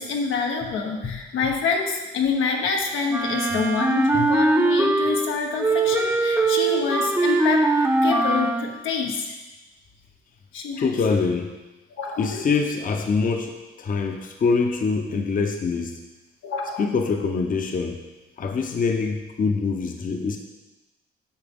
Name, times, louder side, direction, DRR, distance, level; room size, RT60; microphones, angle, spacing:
voice 1, 0.0-7.7 8.0-9.3 10.5-10.9 12.0-12.4 16.4-16.8, left 5 dB, 85° left, 1 dB, 1.1 m, -26 dB
Wind instrument woodwind instrument, 3.1-5.3 5.6-8.7, right 2 dB, 10° right, 0.8 m, -21 dB
voice 2, 10.8-11.5 12.2-16.0 16.8-18.0 18.4-20.4, left 4 dB, 45° left, 3 dB, 0.8 m, -24 dB
8.9 x 5.8 x 3.6 m, 1.1 s
cardioid pair, 90°, 20 cm